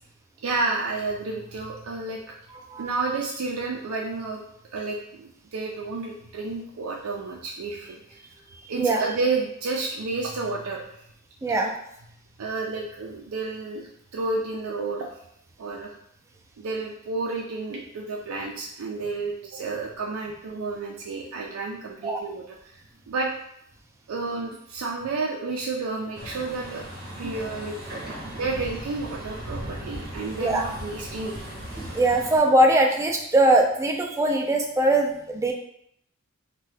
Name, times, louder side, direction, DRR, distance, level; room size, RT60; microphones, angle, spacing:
voice 1, 0.4-2.2 2.8-4.4 4.7-8.2 8.7-11.0 12.4-15.1 15.6-15.9 16.6-22.8 23.1-23.3 24.1-26.8 27.2-27.8 28.3-31.4, right 3 dB, 85° right, -1 dB, 0.4 m, -31 dB
voice 2, 8.5-9.0 11.4-11.7 22.0-22.2 27.2-27.3 28.2-28.4 30.4-30.6 31.8-35.5, right 1 dB, 15° right, 1 dB, 0.3 m, -22 dB
Truck, 26.1-32.4, equal, 50° right, 0.8 m, -37 dB
2.7 x 2.2 x 3.3 m, 0.72 s
head